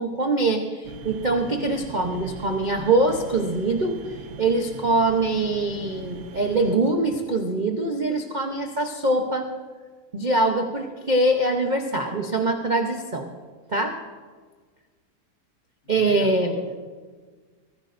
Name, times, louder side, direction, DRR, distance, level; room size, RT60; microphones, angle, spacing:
voice 1, 0.0-4.0 4.4-9.5 10.1-13.3 13.7-14.0 15.9-16.5, right 2 dB, 80° right, 3 dB, 0.4 m, -23 dB
sound 1, 0.8-6.8, right 6 dB, 60° right, 1.0 m, -40 dB
voice 2, 15.8-16.8, equal, 65° left, -3 dB, 3.6 m, -40 dB
22.5 x 15.0 x 2.6 m, 1.5 s
omnidirectional pair, 2.3 m